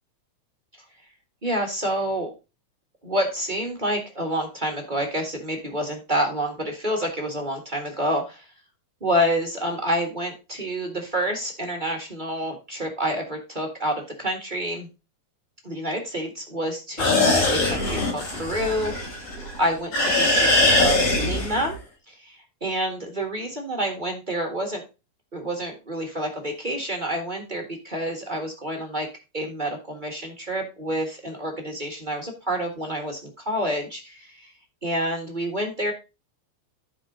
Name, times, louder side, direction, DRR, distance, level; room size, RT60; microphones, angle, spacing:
voice 1, 1.4-2.3 3.0-8.5 9.0-14.9 15.6-21.8 22.1-24.8 25.3-29.1 29.3-34.5 34.8-35.9, equal, 25° right, 1 dB, 1.1 m, -28 dB
sound 1, 17.0-19.6 19.9-21.7, left 2 dB, 75° left, 5.7 m, -21 dB
13.0 x 5.0 x 3.8 m, 0.29 s
omnidirectional pair, 3.4 m